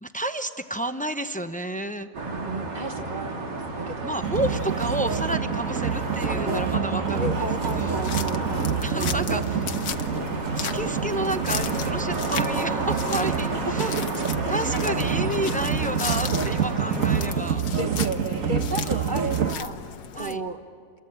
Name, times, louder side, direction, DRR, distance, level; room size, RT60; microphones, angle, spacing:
voice 1, 0.0-2.1 4.0-8.0 8.8-9.7 10.5-14.0 14.5-17.6 18.8-19.3 20.2-20.4, right 1 dB, 15° left, 8 dB, 0.3 m, -31 dB
sound 1, 2.1-17.3, right 2 dB, 85° right, 3.2 m, -31 dB
voice 2, 2.2-4.1 4.6-4.8 5.1-5.2 6.3-6.6 7.1-9.6 13.5-15.5 17.7-19.8 20.1-20.6, right 2 dB, 30° right, 6 dB, 1.2 m, -34 dB
sound 2, 4.2-19.6, right 7 dB, 55° right, 1.4 m, -28 dB
sound 3, 7.5-20.4, left 8 dB, 70° left, 1.5 m, -37 dB
28.5 x 22.5 x 8.8 m, 2.3 s
omnidirectional pair, 1.8 m